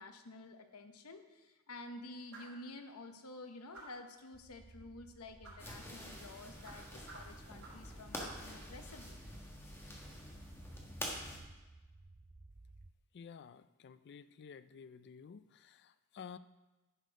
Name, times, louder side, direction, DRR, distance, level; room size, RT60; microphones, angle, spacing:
voice 1, 0.0-9.2, left 2 dB, 80° left, 7 dB, 0.9 m, -51 dB
sound 1, 2.3-2.6 3.7-4.1 5.4-5.7 6.6-7.9 8.2-8.5, right 2 dB, 85° right, 3.3 m, -53 dB
sound 2, 4.3-12.9, right 2 dB, 20° right, 0.4 m, -57 dB
sound 3, 5.6-11.4, left 1 dB, 10° left, 1.5 m, -47 dB
voice 2, 13.1-16.4, left 6 dB, 50° left, 13 dB, 0.4 m, -52 dB
10.0 x 6.6 x 5.2 m, 1.1 s
head